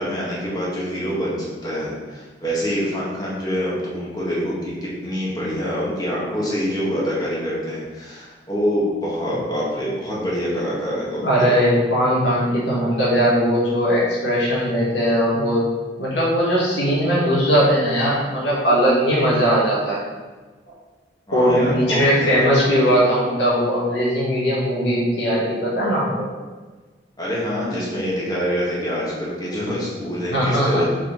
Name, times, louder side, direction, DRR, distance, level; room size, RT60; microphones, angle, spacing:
voice 1, 0.0-11.6 21.3-22.4 27.2-30.8, equal, 25° left, -6 dB, 1.7 m, -25 dB
voice 2, 11.1-15.6 16.0-20.0 21.3-26.3 29.5-29.7 30.3-30.8, equal, 85° left, -6 dB, 1.7 m, -19 dB
5.3 x 4.6 x 3.9 m, 1.3 s
head